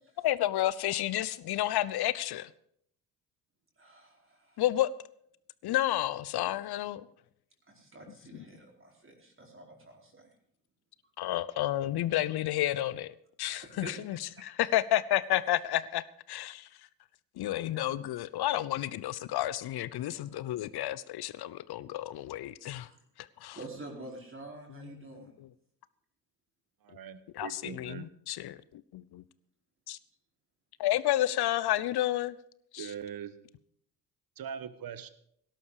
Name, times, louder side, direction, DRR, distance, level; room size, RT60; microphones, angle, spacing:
voice 1, 0.2-2.5 4.6-4.9 5.6-7.1 11.2-16.0 16.3-16.7 17.4-22.9 23.2-23.6 24.8-25.2 27.3-29.2 29.9-30.0 30.8-32.4 32.7-32.9, left 14 dB, 55° left, 0.9 m, -31 dB
voice 2, 3.8-4.6 7.7-10.3 13.4-14.0 14.4-14.5 20.1-20.2 22.9-23.0 23.5-25.3, right 2 dB, 25° right, 4.7 m, -48 dB
voice 3, 26.9-28.0 32.8-33.3 34.4-35.1, right 8 dB, 45° right, 1.4 m, -41 dB
17.5 x 12.0 x 5.0 m
hypercardioid pair, 50°, 48 cm